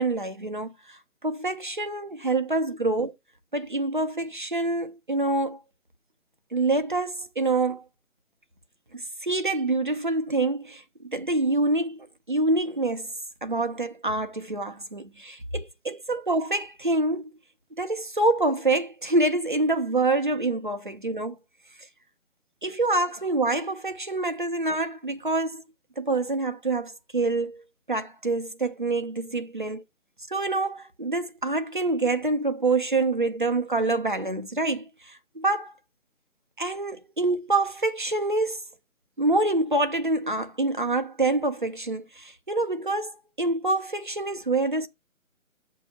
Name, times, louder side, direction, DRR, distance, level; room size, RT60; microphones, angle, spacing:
voice 1, 0.0-3.1 3.5-5.6 6.5-7.8 8.9-10.8 11.1-13.1 13.4-17.3 17.7-21.4 22.6-25.6 26.0-27.6 27.9-29.8 30.3-35.7 36.6-38.6 39.2-43.1 43.4-44.9, right 2 dB, 35° right, 0.5 m, -26 dB
6.8 x 2.7 x 5.5 m
figure-of-eight pair, 160°, 43 cm